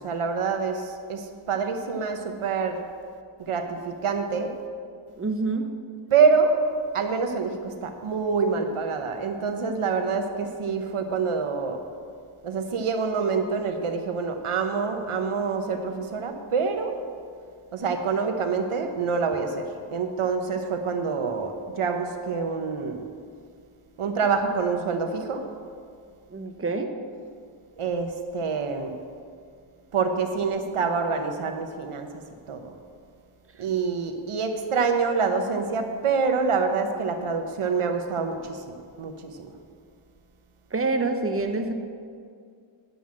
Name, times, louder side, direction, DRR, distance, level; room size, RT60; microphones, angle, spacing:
voice 1, 0.0-2.8 3.4-4.5 6.1-6.6 6.9-11.8 12.4-16.9 17.7-23.0 24.0-25.4 27.8-28.9 29.9-32.1 32.5-32.8 33.6-39.5, right 5 dB, 85° right, 5 dB, 1.0 m, -26 dB
voice 2, 5.2-5.7 26.3-26.9 40.7-41.7, right 3 dB, 25° right, 5 dB, 0.8 m, -26 dB
9.3 x 5.6 x 7.5 m, 2.2 s
wide cardioid pair, 80°, 49 cm